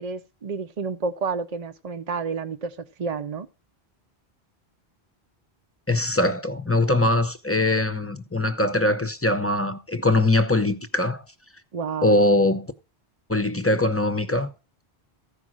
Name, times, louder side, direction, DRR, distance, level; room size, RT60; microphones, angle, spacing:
voice 1, 0.0-3.5 11.7-12.1, right 4 dB, 45° right, 0.6 m, -30 dB
voice 2, 5.9-11.2 12.0-12.7 13.3-14.5, left 2 dB, 15° left, 0.7 m, -22 dB
14.5 x 5.2 x 6.1 m
omnidirectional pair, 1.0 m